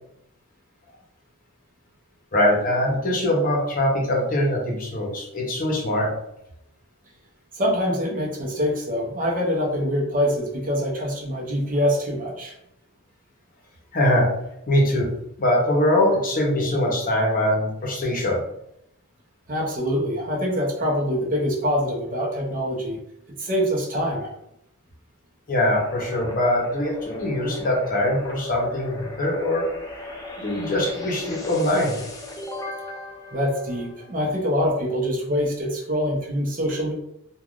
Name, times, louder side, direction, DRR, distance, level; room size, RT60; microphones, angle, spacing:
voice 1, 2.3-6.1 13.9-14.3 14.7-15.1 15.4-18.4 25.5-29.7 30.4-32.0, left 1 dB, 40° left, -2 dB, 0.7 m, -22 dB
voice 2, 7.5-12.5 19.5-23.0 23.4-24.3 33.3-36.9, equal, 40° right, -1 dB, 0.7 m, -24 dB
sound 1, 25.7-34.4, left 2 dB, 15° left, 0.4 m, -38 dB
3.3 x 2.2 x 2.4 m, 0.81 s
head